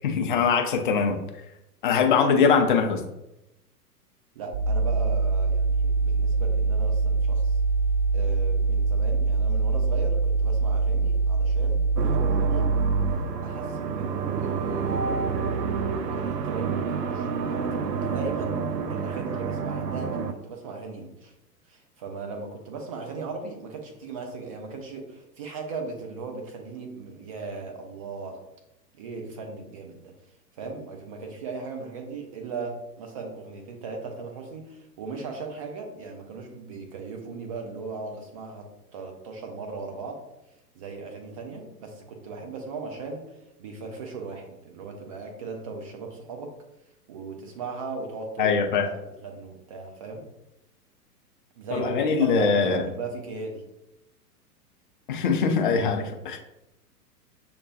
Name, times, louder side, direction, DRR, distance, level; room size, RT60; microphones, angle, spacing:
voice 1, 0.0-1.2 1.8-3.0 48.4-48.9 51.7-52.8 55.1-56.4, left 5 dB, 35° left, 4 dB, 0.4 m, -22 dB
voice 2, 4.3-7.6 8.1-12.7 13.4-15.3 16.0-18.6 18.9-21.3 21.7-28.4 28.9-30.1 30.6-40.2 40.7-43.2 43.6-46.5 47.1-50.2 51.6-53.6, right 4 dB, 25° right, 2 dB, 0.4 m, -37 dB
sound 1, 4.5-13.1, right 3 dB, 40° right, 0.9 m, -23 dB
sound 2, 12.0-20.3, right 5 dB, 80° right, 0.5 m, -29 dB
6.4 x 2.2 x 2.7 m, 0.89 s
figure-of-eight pair, 105°, 48 cm